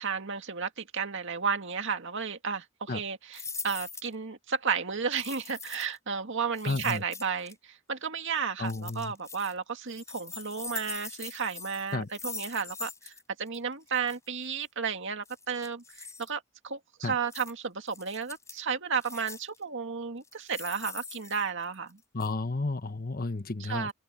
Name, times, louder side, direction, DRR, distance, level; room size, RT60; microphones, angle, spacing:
voice 1, 0.0-13.1 13.4-22.0 23.6-23.9, right 6 dB, 60° right, 2.1 m, -33 dB
sound 1, 3.3-4.1 5.1-6.0 6.5-7.5 8.6-9.5 9.9-13.2 13.5-13.6 13.9-14.2 15.3-16.3 17.3-17.5 17.9-18.6 19.0-19.6 20.2-21.9 22.2-22.3, left 4 dB, 15° left, 4.0 m, -42 dB
voice 2, 6.6-7.0 8.6-9.1 11.9-12.1 17.0-17.1 22.1-23.9, left 3 dB, 45° left, 1.1 m, -32 dB
open air
head